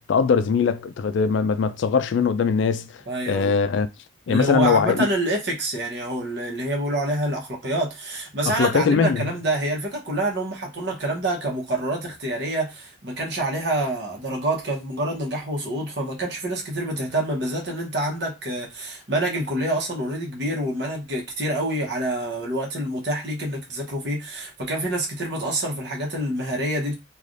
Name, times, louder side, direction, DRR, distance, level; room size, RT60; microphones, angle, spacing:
voice 1, 0.0-2.9 3.3-3.9 4.3-5.1 8.5-9.3, left 5 dB, 75° left, 0.3 m, -21 dB
voice 2, 3.1-3.6 4.3-26.9, right 1 dB, 60° right, 1.0 m, -27 dB
3.2 x 2.3 x 2.5 m
head